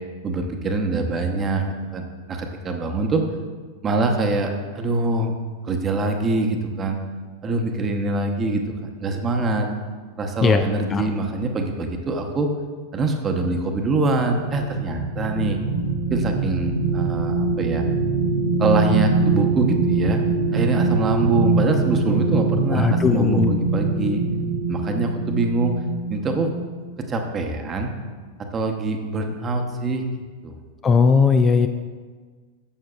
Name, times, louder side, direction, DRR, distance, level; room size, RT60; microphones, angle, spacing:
voice 1, 0.2-1.6 1.9-3.2 3.8-5.4 5.7-7.0 7.4-8.6 9.0-9.7 10.2-12.5 12.9-15.6 16.1-17.8 18.6-20.2 20.5-24.2 24.7-25.7 26.1-26.5 27.0-27.9 28.5-30.0 30.4-30.6, right 2 dB, 25° right, 4 dB, 0.9 m, -24 dB
sound 1, 14.2-26.7 27.2-27.3, right 3 dB, 85° right, 1.6 m, -23 dB
voice 2, 22.7-23.5 30.8-31.7, left 5 dB, 20° left, 7 dB, 0.3 m, -18 dB
11.0 x 7.5 x 2.4 m, 1.5 s
figure-of-eight pair, 90°, 0 cm